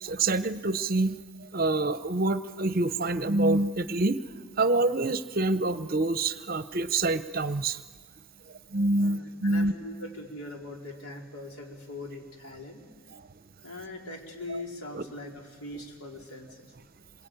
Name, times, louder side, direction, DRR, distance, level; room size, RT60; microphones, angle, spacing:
voice 1, 0.0-1.2 1.5-7.8 8.7-9.7 14.9-15.0, right 2 dB, 40° right, 13 dB, 0.7 m, -26 dB
voice 2, 9.0-12.8 13.6-16.7, left 2 dB, 90° left, 1 dB, 4.2 m, -41 dB
27.5 x 22.5 x 9.0 m, 1.5 s
head